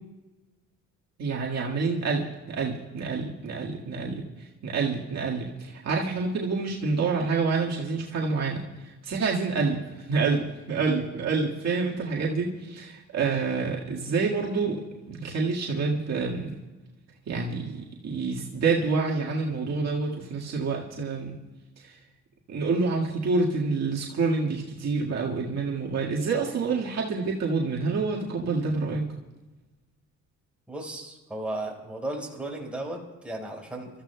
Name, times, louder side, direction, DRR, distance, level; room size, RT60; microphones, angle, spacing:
voice 1, 1.2-14.8 15.1-16.5 17.3-21.3 21.8-22.0 22.5-29.0, right 4 dB, 60° right, -3 dB, 1.9 m, -28 dB
voice 2, 30.7-33.9, right 1 dB, 5° right, -2 dB, 4.6 m, -35 dB
28.5 x 14.0 x 2.3 m, 1.1 s
cardioid pair, 90°, 30 cm